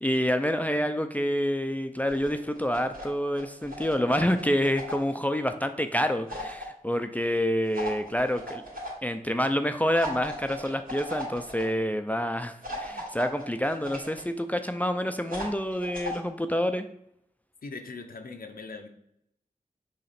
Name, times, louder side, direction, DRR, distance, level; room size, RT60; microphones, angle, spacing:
voice 1, 0.0-8.6 9.0-16.9, equal, 10° left, 8 dB, 0.5 m, -27 dB
sound 1, 2.1-3.1 3.4-5.1 6.3-6.7 7.7-8.9 10.0-11.6 12.6-14.2 15.3-16.2, equal, 75° right, 2.8 m, -37 dB
voice 2, 17.6-18.9, left 4 dB, 90° left, 5 dB, 0.8 m, -40 dB
6.7 x 3.1 x 5.8 m, 0.75 s
wide cardioid pair, 75°, 15 cm